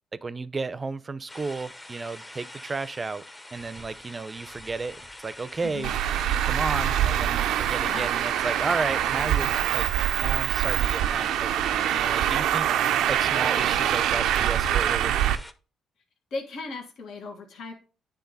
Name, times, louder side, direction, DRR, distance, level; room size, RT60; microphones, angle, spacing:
voice 1, 0.1-3.2 3.5-5.9 6.4-9.9 10.2-12.7 13.1-15.4, right 4 dB, 30° right, 0.5 m, -33 dB
sound 1, 1.3-15.5, left 1 dB, 15° left, 0.8 m, -44 dB
voice 2, 5.6-5.9 7.6-8.1 16.3-17.7, left 3 dB, 75° left, 1.6 m, -37 dB
Traffic noise roadway noise, 5.8-15.4, right 11 dB, 85° right, 0.4 m, -24 dB
9.5 x 3.7 x 4.0 m
cardioid pair, 90°, 0 cm